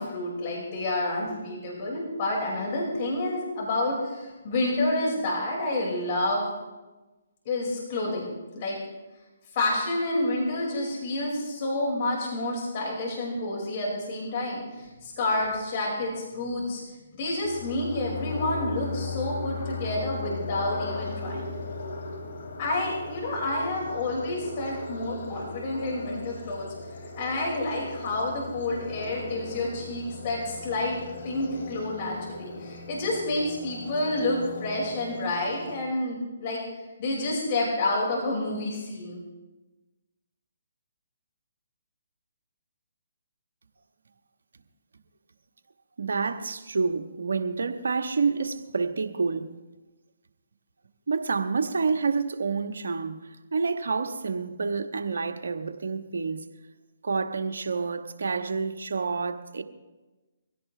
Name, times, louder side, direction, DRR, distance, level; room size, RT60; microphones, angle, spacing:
voice 1, 0.0-6.5 7.5-8.3 8.5-8.8 9.5-16.8 17.2-21.5 22.6-26.7 27.2-31.0 31.2-36.6 37.0-39.2, left 2 dB, 40° left, 5.6 m, -29 dB
sound 1, 17.4-35.8, left 3 dB, 65° left, 3.3 m, -37 dB
voice 2, 46.0-49.5 51.1-56.5 57.0-59.6, right 4 dB, 75° right, 1.3 m, -28 dB
23.0 x 16.0 x 3.4 m
hypercardioid pair, 145°, 0 cm